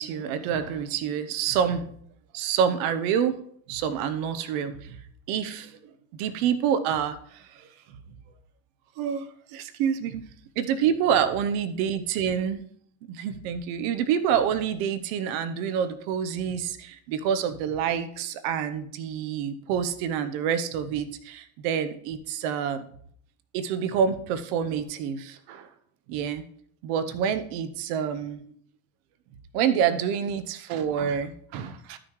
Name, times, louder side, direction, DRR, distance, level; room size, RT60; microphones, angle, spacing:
voice 1, 0.0-1.9 2.3-3.4 3.7-5.0 5.3-5.7 6.1-7.4 9.0-10.3 10.6-12.6 13.1-22.8 23.5-25.7 26.1-26.4 26.8-28.4 29.5-32.0, right 8 dB, 80° right, 13 dB, 0.9 m, -27 dB
13.0 x 6.2 x 3.2 m, 0.63 s
supercardioid pair, 95°, 42 cm